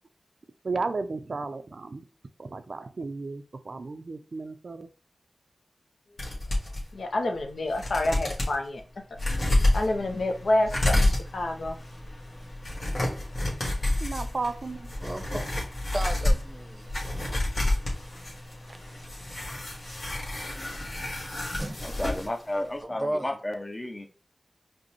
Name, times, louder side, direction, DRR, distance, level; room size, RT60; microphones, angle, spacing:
voice 1, 0.6-2.0 2.4-4.9 14.0-14.9, right 3 dB, 70° right, 10 dB, 0.3 m, -34 dB
sound 1, 6.2-6.8 7.4-7.5 7.7-8.5 9.1-22.3 22.6-22.7, left 1 dB, 65° left, 1.2 m, -29 dB
voice 2, 6.5-11.8, left 1 dB, 85° left, 4 dB, 0.5 m, -29 dB
voice 3, 15.0-15.4 15.9-17.0 18.7-18.8 21.5-21.8 22.8-23.4, right 1 dB, 30° right, 7 dB, 0.6 m, -34 dB
voice 4, 21.8-24.1, left 1 dB, 30° left, 5 dB, 0.7 m, -32 dB
5.1 x 2.0 x 2.9 m, 0.36 s
cardioid pair, 45°, 0 cm